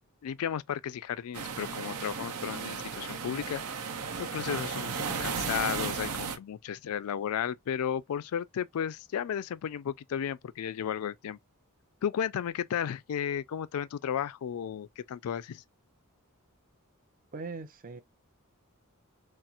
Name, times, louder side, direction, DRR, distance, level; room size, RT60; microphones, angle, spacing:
voice 1, 0.2-3.6 4.2-11.4 12.0-15.6, left 8 dB, 70° left, 0.3 m, -34 dB
sound 1, 1.3-6.4, right 6 dB, 80° right, 0.7 m, -35 dB
voice 2, 17.3-18.0, right 4 dB, 40° right, 0.6 m, -40 dB
4.2 x 2.0 x 2.4 m
head